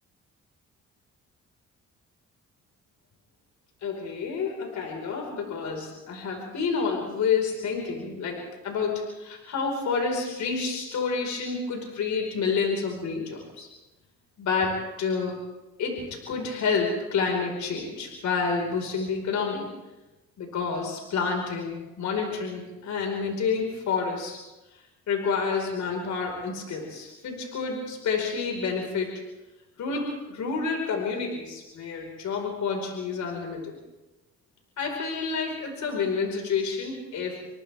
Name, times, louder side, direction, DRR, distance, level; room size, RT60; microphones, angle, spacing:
voice 1, 3.8-13.7 14.4-15.4 15.8-19.7 20.4-24.4 25.1-29.2 29.8-33.8 34.8-37.4, left 5 dB, 70° left, 1 dB, 5.2 m, -29 dB
29.5 x 25.0 x 3.6 m, 1.0 s
cardioid pair, 90°, 30 cm